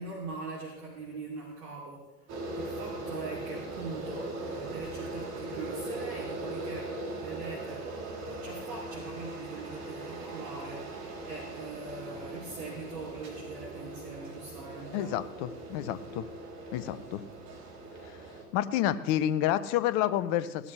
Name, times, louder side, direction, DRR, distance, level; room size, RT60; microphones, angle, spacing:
voice 1, 0.0-2.3 2.5-7.9 8.3-15.2, right 3 dB, 60° right, -5 dB, 3.1 m, -42 dB
sound 1, 2.3-18.4, right 2 dB, 35° right, 3.5 m, -40 dB
voice 2, 14.9-16.3 16.7-17.2 18.5-20.7, left 12 dB, 35° left, 14 dB, 0.6 m, -29 dB
16.5 x 12.0 x 3.3 m, 1.0 s
figure-of-eight pair, 95°, 48 cm